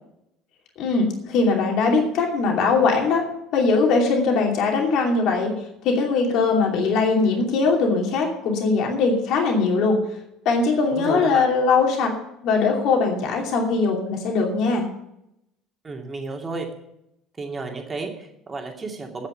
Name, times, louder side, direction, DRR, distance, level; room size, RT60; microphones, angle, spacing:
voice 1, 0.8-3.2 3.5-5.5 5.8-10.0 10.4-12.1 12.4-14.8, left 4 dB, 50° left, 1 dB, 2.7 m, -21 dB
voice 2, 10.9-11.5 15.8-16.7 17.4-19.3, right 3 dB, 25° right, 2 dB, 2.5 m, -32 dB
9.6 x 8.4 x 8.7 m, 0.80 s
figure-of-eight pair, 60°, 0 cm